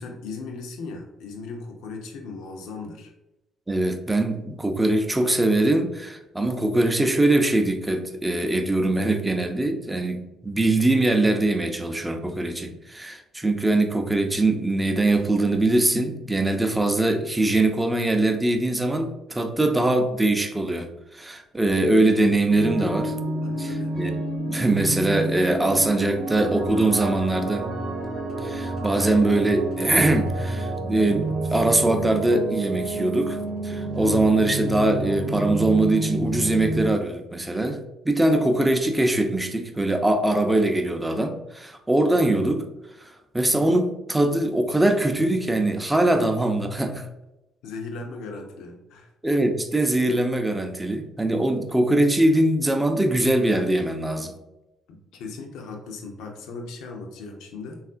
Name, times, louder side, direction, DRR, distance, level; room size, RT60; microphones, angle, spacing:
voice 1, 0.0-3.1 23.4-23.9 46.2-46.3 47.6-49.1 54.9-57.8, left 3 dB, 70° left, 3 dB, 0.5 m, -37 dB
voice 2, 3.7-23.1 23.6-27.7 28.4-37.8 38.0-42.6 43.0-47.1 49.2-54.4, right 2 dB, 15° right, 6 dB, 0.5 m, -22 dB
sound 1, 22.5-36.9, right 1 dB, 45° right, 0.8 m, -29 dB
3.5 x 2.4 x 2.4 m, 0.95 s
hypercardioid pair, 50°, 0 cm